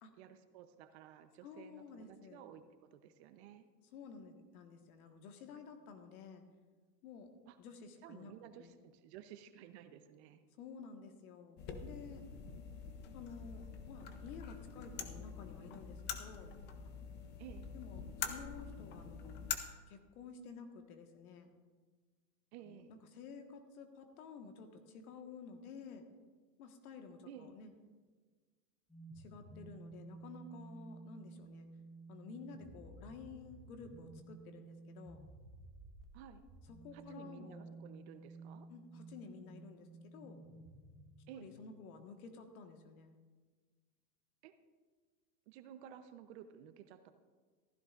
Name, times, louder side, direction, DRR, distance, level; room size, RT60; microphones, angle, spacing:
voice 1, 0.2-3.7 7.5-7.6 8.0-10.4 17.4-17.7 22.5-22.9 27.3-27.6 36.1-36.4 36.9-38.7 41.3-41.5 44.4-44.5 45.5-47.1, right 9 dB, 40° right, 9 dB, 0.8 m, -54 dB
voice 2, 1.4-2.4 3.9-6.4 7.0-7.3 7.6-8.3 8.6-8.7 10.6-12.2 13.1-16.5 17.7-19.4 19.9-21.5 22.7-26.1 26.6-27.7 29.1-31.7 32.1-35.2 36.7-37.8 38.7-40.4 41.3-43.2, left 5 dB, 60° left, 5 dB, 1.6 m, -52 dB
sound 1, 11.6-19.6, left 7 dB, 20° left, 0.6 m, -45 dB
sound 2, 28.9-41.7, right 3 dB, ahead, 1.2 m, -54 dB
15.0 x 13.5 x 2.5 m, 1.4 s
supercardioid pair, 140°, 49 cm